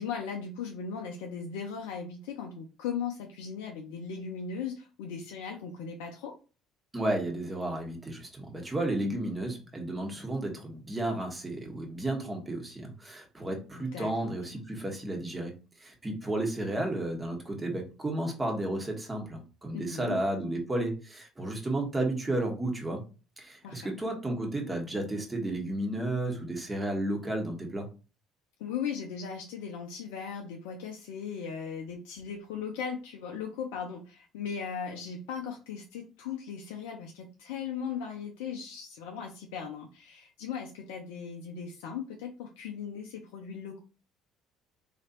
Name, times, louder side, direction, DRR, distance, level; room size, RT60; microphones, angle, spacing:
voice 1, 0.0-6.4 13.7-14.4 19.7-20.2 23.6-23.9 28.6-43.8, left 6 dB, 75° left, 1 dB, 0.6 m, -38 dB
voice 2, 6.9-15.5 15.8-23.0 23.4-27.9, right 1 dB, 20° right, 2 dB, 1.5 m, -32 dB
4.0 x 3.0 x 2.9 m, 0.34 s
hypercardioid pair, 60°, 0 cm